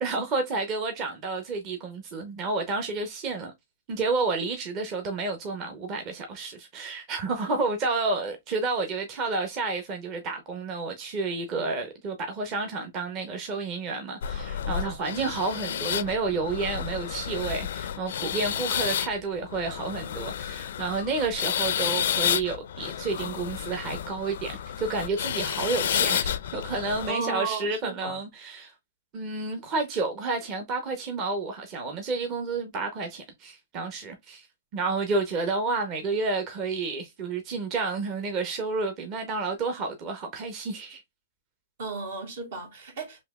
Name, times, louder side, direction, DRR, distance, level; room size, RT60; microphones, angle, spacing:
voice 1, 0.0-3.5 3.9-28.7 29.1-34.5 34.7-41.0, right 3 dB, 30° right, 0.8 m, -30 dB
sound 1, 14.2-27.1, left 9 dB, 70° left, 0.4 m, -31 dB
voice 2, 27.1-28.2 41.8-43.2, right 3 dB, 65° right, 1.3 m, -34 dB
4.2 x 2.9 x 2.3 m
hypercardioid pair, 140°, 0 cm